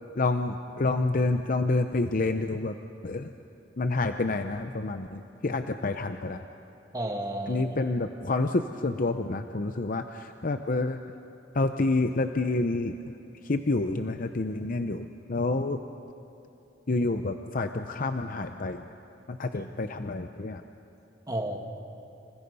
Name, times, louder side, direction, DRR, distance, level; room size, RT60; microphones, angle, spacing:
voice 1, 0.2-2.7 3.0-3.3 3.8-6.4 7.5-11.0 11.5-12.9 13.4-15.8 16.9-18.8 19.3-20.6, left 2 dB, 50° left, 7 dB, 0.7 m, -28 dB
voice 2, 6.9-7.8 19.6-19.7 21.3-21.6, right 1 dB, 20° right, 2 dB, 2.1 m, -32 dB
29.0 x 27.5 x 5.5 m, 2.9 s
head